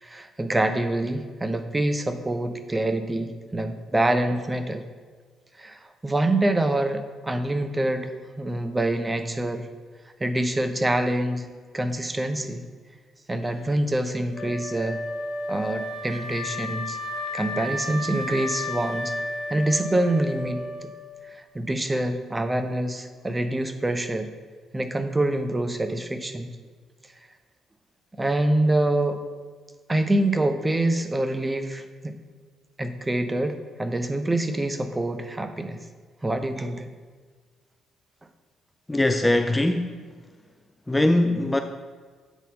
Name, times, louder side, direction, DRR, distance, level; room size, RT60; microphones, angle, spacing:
voice 1, 0.0-4.8 5.6-9.7 10.2-11.5 11.7-12.7 13.3-15.0 15.5-17.0 17.3-19.1 19.5-20.7 21.3-24.3 24.7-26.6 28.2-29.2 29.9-32.1 32.8-35.8 36.2-36.9, right 1 dB, 20° right, 7 dB, 0.7 m, -26 dB
Wind instrument woodwind instrument, 14.3-21.3, left 2 dB, 45° left, 1.0 m, -33 dB
voice 2, 38.9-40.2 40.9-41.6, left 1 dB, 10° left, 7 dB, 0.4 m, -22 dB
8.0 x 4.2 x 5.4 m, 1.5 s
figure-of-eight pair, 45°, 0 cm